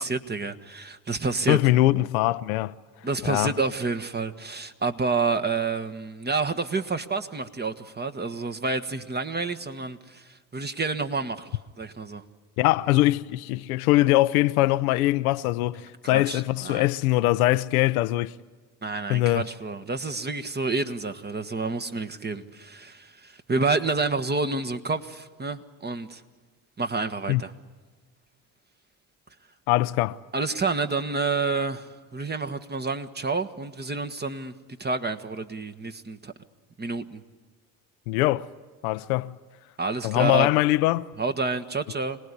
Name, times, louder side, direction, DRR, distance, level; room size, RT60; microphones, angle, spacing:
voice 1, 0.0-1.6 3.0-12.2 16.1-16.9 18.8-26.2 26.8-27.5 30.3-34.5 34.8-36.3 36.8-37.2 39.8-40.5 41.2-42.2, right 4 dB, 25° right, 1.5 m, -29 dB
voice 2, 1.5-2.7 3.2-3.5 12.6-18.4 19.1-19.5 27.3-27.4 29.7-30.2 38.1-38.5 38.8-39.4 40.0-41.1, left 17 dB, 90° left, 0.7 m, -22 dB
26.0 x 19.0 x 9.8 m
supercardioid pair, 70°, 42 cm